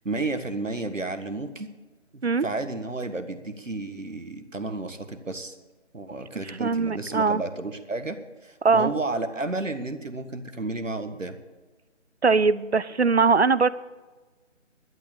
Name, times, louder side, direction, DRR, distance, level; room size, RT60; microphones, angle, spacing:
voice 1, 0.1-1.7 2.1-5.6 5.9-11.4, right 2 dB, 80° right, 9 dB, 1.7 m, -32 dB
voice 2, 6.5-7.4 8.6-8.9 12.2-13.7, right 4 dB, 60° right, 18 dB, 0.6 m, -21 dB
12.0 x 7.9 x 8.5 m, 1.3 s
figure-of-eight pair, 160°, 38 cm